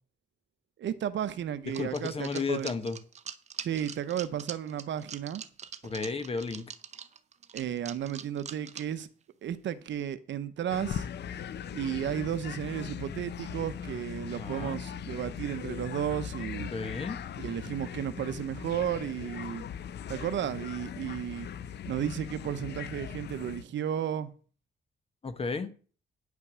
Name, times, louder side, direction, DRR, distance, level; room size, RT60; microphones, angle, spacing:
voice 1, 0.8-2.7 3.6-5.4 7.5-9.1 9.4-11.1 11.7-16.7 17.4-19.7 20.1-21.5 21.9-24.3, right 10 dB, 70° right, 0.8 m, -33 dB
voice 2, 1.7-3.0 5.8-6.7 14.4-14.8 16.7-17.2 25.2-25.7, left 4 dB, 30° left, 1.0 m, -33 dB
sound 1, 1.7-9.0 9.5-9.6 9.8-9.9, right 7 dB, 35° right, 0.6 m, -43 dB
sound 2, 10.7-23.6, left 8 dB, 60° left, 0.6 m, -39 dB
9.7 x 5.9 x 6.1 m
wide cardioid pair, 170°, 20 cm